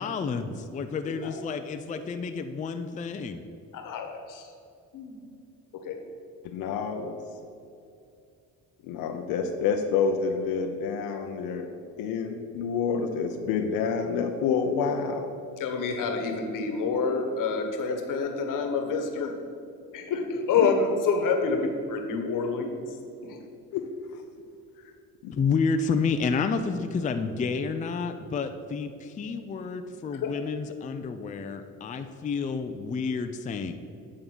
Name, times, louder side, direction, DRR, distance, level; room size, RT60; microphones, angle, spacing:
voice 1, 0.0-3.4 25.3-33.7, left 5 dB, 20° left, 7 dB, 0.4 m, -30 dB
voice 2, 3.7-4.5 4.9-5.2 5.8-6.0 15.6-19.3 19.9-22.8 23.2-23.4 30.1-30.3, left 4 dB, 65° left, 4 dB, 1.3 m, -27 dB
voice 3, 6.5-7.2 8.8-11.7 12.0-15.3 20.6-20.7 23.7-23.8 25.2-25.3, left 6 dB, 80° left, 4 dB, 0.7 m, -28 dB
8.9 x 3.7 x 6.1 m, 2.6 s
supercardioid pair, 85°, 35 cm